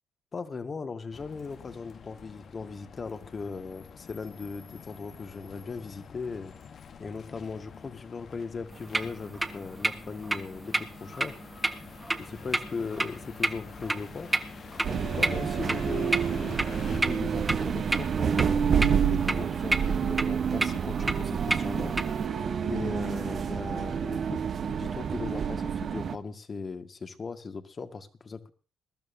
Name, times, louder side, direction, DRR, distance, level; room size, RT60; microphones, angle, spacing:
voice 1, 0.3-6.5 7.0-11.4 12.2-14.3 14.9-16.6 16.9-21.9 22.6-28.5, left 4 dB, 40° left, 7 dB, 1.9 m, -38 dB
sound 1, 1.1-17.0, left 7 dB, 55° left, 1.2 m, -48 dB
sound 2, 8.7-22.3, right 2 dB, 15° right, 1.5 m, -33 dB
sound 3, 14.8-26.2, right 7 dB, 55° right, 1.1 m, -28 dB
22.0 x 12.0 x 2.8 m, 0.38 s
supercardioid pair, 65°, 0 cm